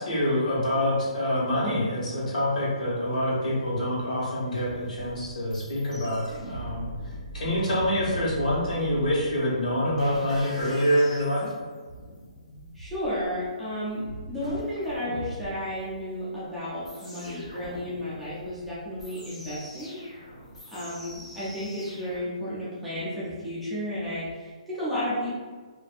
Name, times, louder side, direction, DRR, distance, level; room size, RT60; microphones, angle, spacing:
voice 1, 0.0-6.9 7.3-11.5, equal, 85° left, -5 dB, 1.2 m, -26 dB
sound 1, 4.5-22.2, right 1 dB, 65° left, 1.2 m, -42 dB
voice 2, 12.7-20.0 20.7-25.4, left 1 dB, ahead, -12 dB, 0.3 m, -32 dB
2.5 x 2.5 x 2.3 m, 1.4 s
hypercardioid pair, 180°, 4 cm